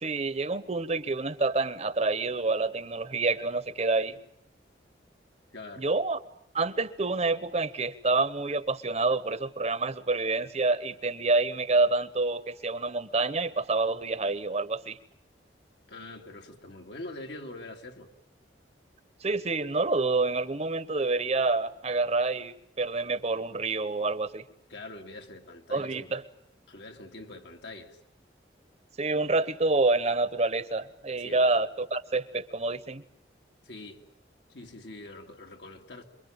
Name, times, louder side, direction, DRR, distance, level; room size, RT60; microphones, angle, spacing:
voice 1, 0.0-4.1 5.8-6.2 6.5-15.0 19.2-24.4 25.7-26.2 29.0-33.0, right 3 dB, 35° right, 1.0 m, -27 dB
voice 2, 5.5-5.9 15.9-18.1 24.7-26.1 26.7-28.0 31.2-31.4 33.6-34.0 34.5-36.0, left 2 dB, 70° left, 2.6 m, -44 dB
27.5 x 22.5 x 8.8 m
head